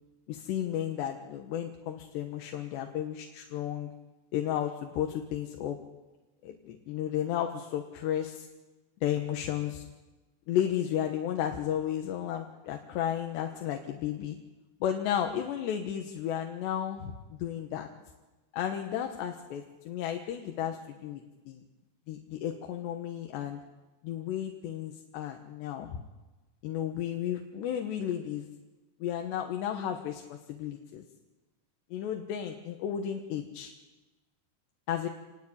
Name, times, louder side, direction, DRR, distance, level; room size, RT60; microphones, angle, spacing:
voice 1, 0.3-3.9 4.3-5.8 6.4-8.5 9.0-9.8 10.5-14.4 14.8-17.9 18.5-21.6 22.1-23.6 24.0-26.0 26.6-28.5 29.0-31.0 31.9-33.7 34.9-35.1, left 10 dB, 75° left, 4 dB, 3.5 m, -33 dB
28.0 x 19.5 x 8.7 m, 1.2 s
omnidirectional pair, 5.0 m